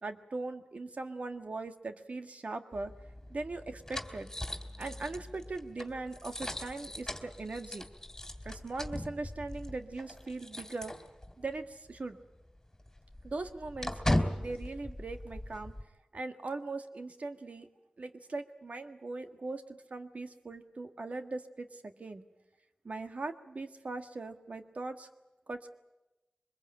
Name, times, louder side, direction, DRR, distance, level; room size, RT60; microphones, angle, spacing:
voice 1, 0.0-2.9 3.3-4.3 4.8-7.9 8.5-10.9 11.4-12.2 13.2-14.0 14.3-15.7 16.1-17.7 18.0-22.2 22.8-25.1 25.5-25.8, right 3 dB, 65° right, 7 dB, 1.7 m, -40 dB
sound 1, 2.7-11.6 11.9-12.0 12.4-15.8, left 1 dB, 20° left, 3.1 m, -38 dB
23.5 x 21.5 x 8.9 m, 1.0 s
cardioid pair, 45°, 3 cm